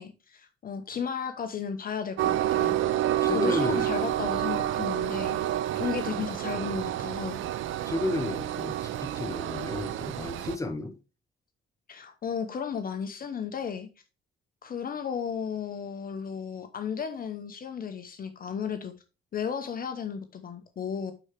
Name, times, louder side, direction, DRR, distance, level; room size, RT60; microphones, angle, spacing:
voice 1, 0.0-2.8 3.3-7.4 11.9-13.9 14.6-18.9 19.3-21.1, left 7 dB, 45° left, 0.9 m, -34 dB
Train, 2.2-10.6, right 12 dB, 80° right, 0.7 m, -29 dB
voice 2, 3.2-3.9 7.8-11.0, left 2 dB, 15° left, 1.3 m, -32 dB
9.8 x 4.4 x 3.3 m
cardioid pair, 90°, 20 cm